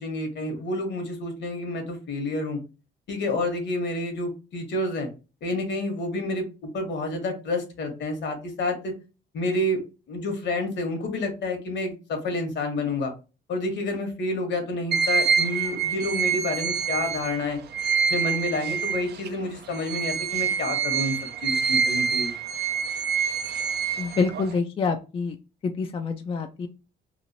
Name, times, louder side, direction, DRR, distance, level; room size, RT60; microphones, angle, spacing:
voice 1, 0.0-2.6 3.1-5.1 5.4-8.9 9.3-9.8 10.1-13.1 13.5-17.6 18.1-21.1 21.4-22.3, left 2 dB, 65° left, 5 dB, 1.1 m, -29 dB
sound 1, 14.9-19.3 19.7-24.6, right 6 dB, 55° right, 0.5 m, -26 dB
voice 2, 24.0-25.4 25.6-26.7, left 4 dB, 30° left, 5 dB, 0.3 m, -27 dB
3.0 x 2.4 x 2.7 m, 0.31 s
cardioid pair, 90°, 20 cm